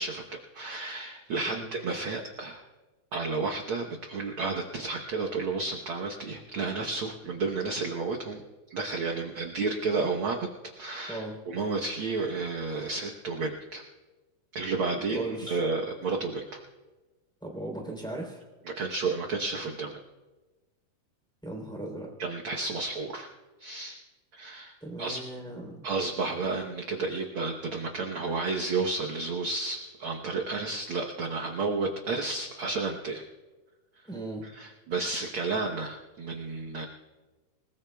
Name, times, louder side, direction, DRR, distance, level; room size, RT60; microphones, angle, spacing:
voice 1, 0.0-2.6 3.1-8.4 8.7-10.5 10.8-13.8 14.5-16.6 18.6-20.0 22.2-23.3 23.6-24.0 24.4-24.7 25.0-25.2 25.8-33.3 34.4-36.9, right 3 dB, 65° right, 0 dB, 1.3 m, -32 dB
voice 2, 14.9-15.6 17.4-18.4 21.4-22.1 24.8-25.8 34.0-34.5, right 2 dB, ahead, -1 dB, 2.8 m, -37 dB
27.5 x 19.0 x 2.3 m, 1.2 s
omnidirectional pair, 3.7 m